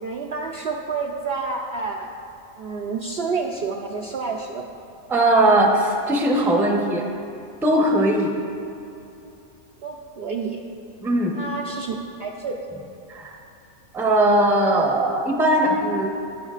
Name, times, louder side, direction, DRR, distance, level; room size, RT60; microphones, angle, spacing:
voice 1, 0.0-2.1 2.6-4.7 9.8-10.6 11.4-11.9 12.2-12.6, right 4 dB, 60° right, -1 dB, 0.7 m, -29 dB
voice 2, 5.1-7.1 7.6-8.4 11.0-11.4 13.1-13.4 13.9-16.1, right 1 dB, ahead, 0 dB, 0.6 m, -19 dB
18.5 x 6.3 x 2.4 m, 2.7 s
omnidirectional pair, 1.5 m